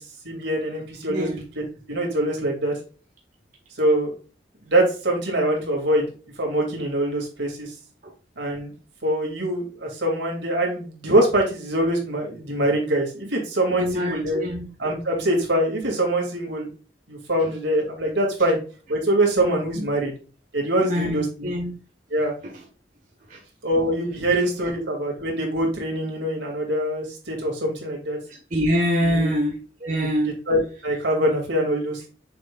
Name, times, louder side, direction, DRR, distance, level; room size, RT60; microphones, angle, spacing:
voice 1, 0.0-2.7 3.8-4.1 4.6-6.1 6.4-7.7 8.4-8.7 9.0-14.4 14.8-16.7 17.1-18.6 18.9-20.1 20.5-21.5 22.1-22.3 23.6-28.2 29.0-29.3 30.5-32.1, right 1 dB, 85° right, 0 dB, 2.9 m, -24 dB
voice 2, 1.1-1.4 13.8-14.7 19.7-19.9 20.8-21.7 22.4-22.5 23.3-23.4 28.3-29.5 29.8-30.3, equal, 45° right, -1 dB, 1.4 m, -25 dB
7.1 x 6.4 x 2.6 m, 0.36 s
head